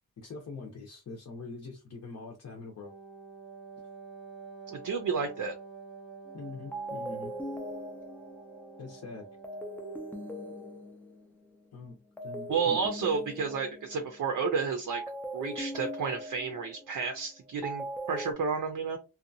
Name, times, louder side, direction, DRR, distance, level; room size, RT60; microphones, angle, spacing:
voice 1, 0.2-2.9 6.3-7.3 8.8-9.3 11.7-12.8, left 3 dB, 50° left, 0 dB, 0.6 m, -43 dB
Wind instrument woodwind instrument, 2.8-10.9, right 5 dB, 15° right, 0.8 m, -48 dB
voice 2, 4.7-5.5 12.5-15.0 15.3-19.0, right 5 dB, 60° right, 4 dB, 0.6 m, -31 dB
sound 1, 6.3-6.4 6.7-11.7 12.2-14.4 14.9-18.3, right 1 dB, 5° left, 0.3 m, -40 dB
2.7 x 2.3 x 2.6 m, 0.29 s
wide cardioid pair, 160°, 36 cm